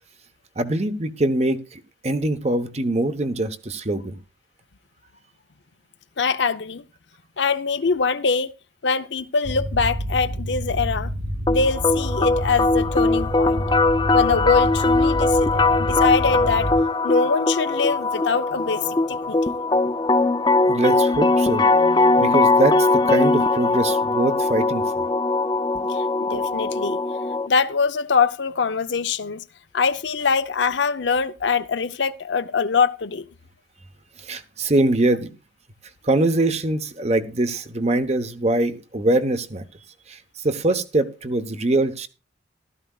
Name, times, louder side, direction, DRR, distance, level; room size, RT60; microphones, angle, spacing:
voice 1, 0.6-4.2 20.7-21.7 22.2-25.1 34.2-35.3 36.0-39.6 40.1-40.2 40.4-42.1, right 2 dB, 35° right, 1.0 m, -23 dB
voice 2, 6.2-6.8 7.4-8.5 8.8-11.1 11.5-13.7 14.1-16.8 17.0-19.6 21.7-22.2 25.9-27.0 27.5-29.4 29.7-33.3, left 5 dB, 70° left, 0.7 m, -23 dB
sound 1, 9.4-16.8, equal, 60° right, 1.7 m, -28 dB
sound 2, 11.5-27.5, left 3 dB, 25° left, 0.5 m, -20 dB
15.5 x 13.0 x 2.4 m
head